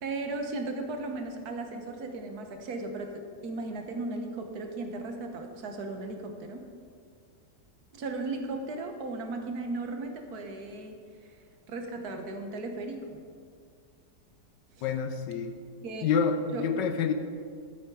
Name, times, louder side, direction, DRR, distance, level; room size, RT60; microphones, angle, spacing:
voice 1, 0.0-6.7 7.9-11.0 11.7-13.2 14.8-14.9 15.8-16.1 16.5-16.6, right 2 dB, 65° right, 5 dB, 1.6 m, -36 dB
voice 2, 14.8-15.6 16.0-17.1, left 6 dB, 85° left, 7 dB, 1.3 m, -27 dB
13.0 x 8.2 x 4.7 m, 2.2 s
omnidirectional pair, 1.9 m